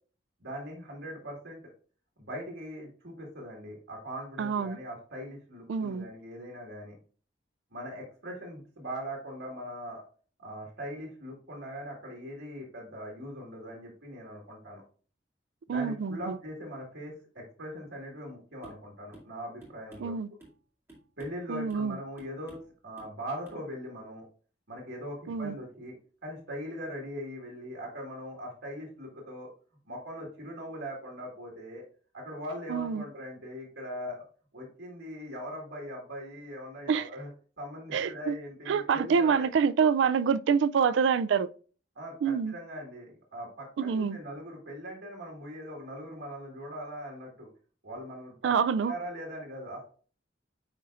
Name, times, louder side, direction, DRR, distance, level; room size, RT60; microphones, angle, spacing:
voice 1, 0.4-1.6 2.2-6.9 7.7-10.0 10.4-14.8 15.7-20.1 21.2-24.3 24.7-26.0 26.2-29.5 29.9-31.8 32.1-34.2 34.5-37.3 37.6-39.5 42.0-47.5 47.8-48.5 48.8-49.8, equal, 85° right, 1.9 m, -41 dB
voice 2, 4.4-4.8 5.7-6.1 15.7-16.4 20.0-20.3 21.5-22.0 25.3-25.6 32.7-33.0 36.9-37.1 37.9-38.3 38.7-41.5 42.2-42.5 43.8-44.2 48.4-48.9, right 6 dB, 70° right, 0.3 m, -26 dB
sound 1, 18.6-18.9 19.1-19.3 19.6-20.6 20.9-21.4 21.7-21.9 22.2-22.7 23.0-23.2 23.4-23.6, right 2 dB, 15° right, 2.8 m, -52 dB
9.5 x 4.2 x 2.5 m
head